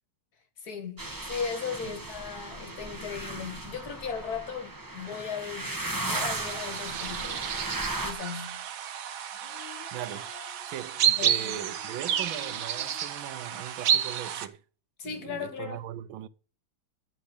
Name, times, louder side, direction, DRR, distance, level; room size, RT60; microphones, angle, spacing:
voice 1, 0.6-5.7 5.9-7.5 8.0-8.7 11.2-11.6 15.0-15.8, left 6 dB, 55° left, 1.7 m, -37 dB
sound 1, 1.0-8.1, right 2 dB, 15° right, 0.8 m, -36 dB
sound 2, 6.1-14.5, right 9 dB, 60° right, 1.0 m, -31 dB
sound 3, 9.3-13.7, left 11 dB, 75° left, 1.6 m, -52 dB
voice 2, 9.9-10.3 10.7-14.6 15.0-16.3, right 12 dB, 85° right, 1.4 m, -39 dB
11.5 x 4.2 x 7.8 m
omnidirectional pair, 2.2 m